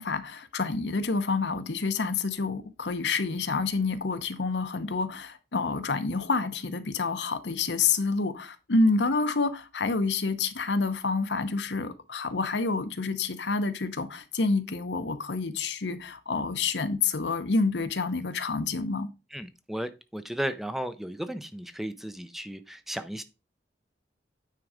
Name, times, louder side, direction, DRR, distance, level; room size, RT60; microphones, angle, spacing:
voice 1, 0.0-19.1, left 4 dB, 75° left, 0.9 m, -28 dB
voice 2, 19.3-23.2, equal, ahead, 0.5 m, -35 dB
9.2 x 3.8 x 4.9 m
head